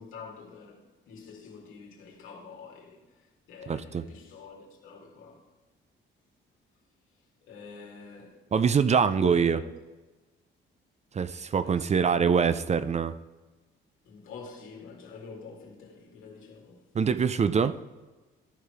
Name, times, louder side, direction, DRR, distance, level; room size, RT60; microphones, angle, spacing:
voice 1, 0.0-5.5 7.4-8.5 8.9-9.7 11.6-12.4 14.0-16.9, left 4 dB, 90° left, 2.3 m, -46 dB
voice 2, 3.7-4.0 8.5-9.6 11.1-13.2 16.9-17.8, right 6 dB, 35° right, 0.5 m, -24 dB
13.5 x 4.8 x 5.0 m
cardioid pair, 90°, 20 cm